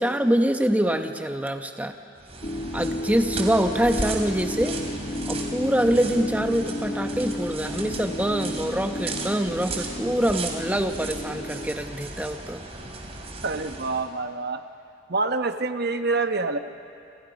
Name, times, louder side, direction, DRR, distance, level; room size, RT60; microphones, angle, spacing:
voice 1, 0.0-2.0 2.7-4.8 5.3-12.6, right 1 dB, 10° right, 6 dB, 1.0 m, -25 dB
sound 1, 2.2-14.1, right 3 dB, 30° right, 2.8 m, -36 dB
sound 2, 2.4-11.7, left 1 dB, 40° left, 1.2 m, -33 dB
voice 2, 13.4-14.6 15.1-16.6, right 3 dB, 55° right, 8 dB, 1.0 m, -26 dB
28.0 x 28.0 x 5.3 m, 2.5 s
head